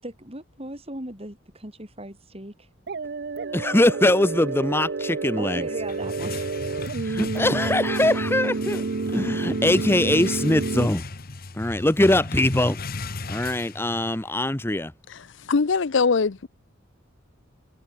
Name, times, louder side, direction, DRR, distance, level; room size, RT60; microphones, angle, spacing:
voice 1, 0.0-2.7 5.4-6.5 7.2-7.3, right 1 dB, 30° right, 7.1 m, -38 dB
sound 1, 2.9-10.9, right 3 dB, 55° right, 0.6 m, -29 dB
voice 2, 3.5-5.6 7.0-8.9 9.1-11.0 11.5-12.8 13.3-14.9, left 1 dB, 10° left, 0.9 m, -22 dB
sound 2, 5.6-14.3, left 3 dB, 50° left, 1.3 m, -35 dB
voice 3, 15.5-16.5, left 4 dB, 65° left, 0.6 m, -21 dB
head